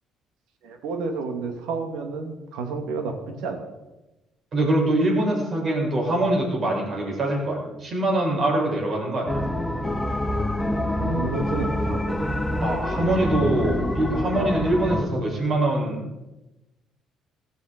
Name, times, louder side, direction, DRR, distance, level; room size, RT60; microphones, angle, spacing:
voice 1, 0.6-3.6 11.0-12.1 13.0-13.8 14.7-15.0, right 4 dB, 80° right, 5 dB, 2.5 m, -31 dB
voice 2, 4.5-9.5 12.6-16.2, right 1 dB, 50° right, -2 dB, 7.7 m, -24 dB
sound 1, 9.3-15.0, left 1 dB, 5° left, 2.3 m, -26 dB
16.5 x 13.5 x 5.3 m, 1.0 s
supercardioid pair, 65°, 0 cm